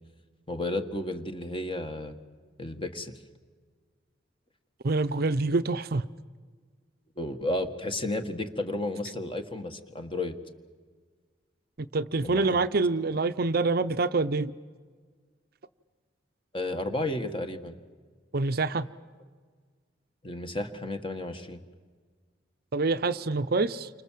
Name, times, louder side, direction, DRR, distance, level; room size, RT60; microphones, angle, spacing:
voice 1, 0.5-2.2 2.6-3.1 7.2-10.4 12.2-12.5 16.5-17.7 20.2-21.6, left 1 dB, 30° left, 7 dB, 1.7 m, -32 dB
voice 2, 4.8-6.0 11.9-14.5 18.3-18.9 22.7-23.9, right 3 dB, 55° right, 11 dB, 0.7 m, -26 dB
29.5 x 25.5 x 7.6 m, 1.5 s
head